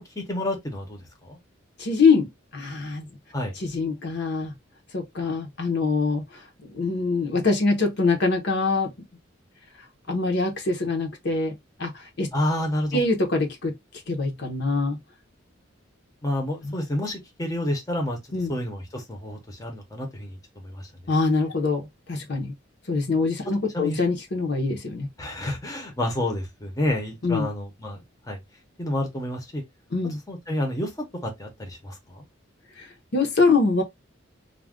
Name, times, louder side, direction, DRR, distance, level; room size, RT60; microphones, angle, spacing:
voice 1, 0.0-1.4 3.3-3.5 12.3-13.0 16.2-18.2 18.5-20.4 20.6-20.9 23.7-24.0 25.2-28.0 28.3-28.4 28.8-29.6 30.3-30.9 31.2-32.2, left 1 dB, 15° left, 0.7 m, -29 dB
voice 2, 1.8-2.3 2.5-3.0 3.6-4.5 4.9-6.2 6.6-8.9 10.1-11.5 11.8-11.9 12.2-12.3 12.9-13.7 14.1-15.0 16.6-16.7 18.3-18.6 21.1-22.5 22.9-25.1 27.2-27.5 29.9-30.2 32.8-32.9 33.1-33.8, left 3 dB, 55° left, 0.7 m, -24 dB
2.4 x 2.2 x 3.4 m
head